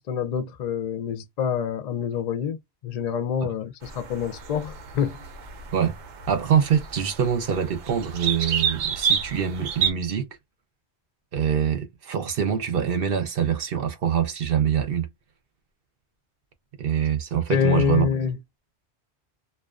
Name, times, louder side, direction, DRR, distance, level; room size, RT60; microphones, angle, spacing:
voice 1, 0.0-2.6 2.8-5.2 17.5-18.4, left 8 dB, 60° left, 0.4 m, -26 dB
sound 1, 3.8-9.9, right 7 dB, 85° right, 1.0 m, -29 dB
voice 2, 6.3-10.3 11.3-15.1 16.8-18.1, right 8 dB, 60° right, 0.8 m, -24 dB
2.4 x 2.2 x 2.3 m
omnidirectional pair, 1.1 m